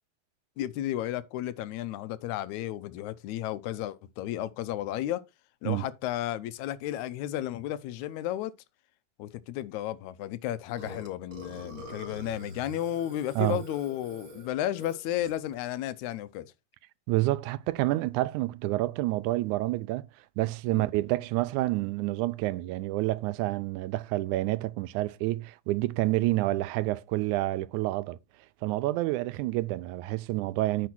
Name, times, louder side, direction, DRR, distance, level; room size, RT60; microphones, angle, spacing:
voice 1, 0.6-5.2 5.6-8.5 9.2-16.5 20.7-20.9, left 12 dB, 80° left, 2.0 m, -33 dB
Burping eructation, 10.8-15.5, equal, 40° right, 3.4 m, -45 dB
voice 2, 17.1-20.1 20.4-28.2 28.6-30.9, right 18 dB, 90° right, 2.0 m, -28 dB
9.4 x 4.2 x 6.0 m
omnidirectional pair, 3.4 m